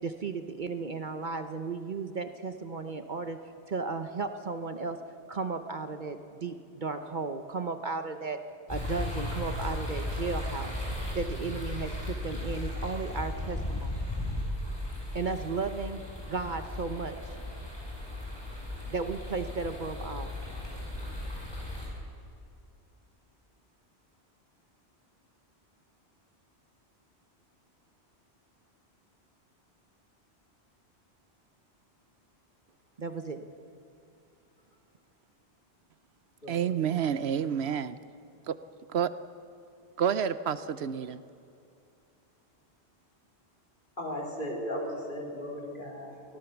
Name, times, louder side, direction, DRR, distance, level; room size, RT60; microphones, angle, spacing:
voice 1, 0.0-3.4 3.7-5.0 5.3-10.8 11.1-14.0 15.1-17.4 18.9-20.4 33.0-33.5, right 4 dB, 45° right, 8 dB, 1.0 m, -35 dB
sound 1, 8.7-21.9, left 1 dB, 20° left, 6.9 m, -36 dB
voice 2, 36.5-38.0 38.5-38.6 38.9-39.1 40.0-41.2, right 8 dB, 70° right, 14 dB, 0.9 m, -29 dB
voice 3, 44.0-46.4, equal, 50° left, -2 dB, 4.3 m, -36 dB
23.5 x 17.5 x 7.1 m, 2.6 s
omnidirectional pair, 1.1 m